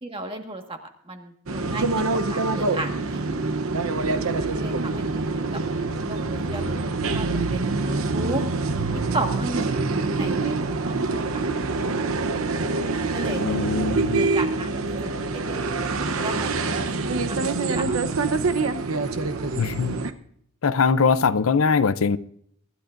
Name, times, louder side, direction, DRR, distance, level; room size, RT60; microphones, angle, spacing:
voice 1, 0.0-0.8 1.0-3.4 4.4-5.6 6.0-8.4 8.9-11.4 12.9-13.6 14.1-15.8 16.2-18.4, right 2 dB, 25° right, 1.6 m, -35 dB
sound 1, 1.5-20.1, right 3 dB, 75° right, 0.9 m, -25 dB
voice 2, 13.4-14.3 19.6-20.0 20.6-22.2, left 5 dB, 75° left, 0.6 m, -21 dB
24.0 x 12.5 x 2.6 m
head